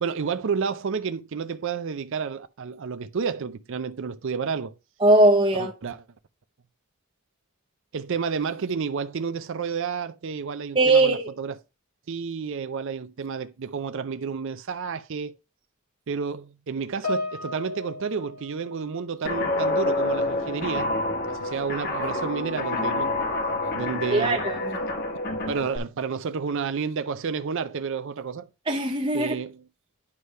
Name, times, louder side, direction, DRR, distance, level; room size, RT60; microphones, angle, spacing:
voice 1, 0.0-4.7 5.6-6.0 7.9-11.6 12.1-15.4 16.1-20.9 21.3-23.2 23.7-24.4 25.5-28.5 29.1-29.6, right 5 dB, 55° right, 0.4 m, -30 dB
voice 2, 5.0-5.7 10.8-11.2 24.1-24.8 28.7-29.4, right 2 dB, 25° right, 0.7 m, -20 dB
Piano, 17.0-19.7 19.9-20.3 21.1-21.2, left 2 dB, 85° left, 1.9 m, -35 dB
Guitar, 19.2-25.8, left 2 dB, 45° left, 1.3 m, -27 dB
9.6 x 3.3 x 5.5 m
head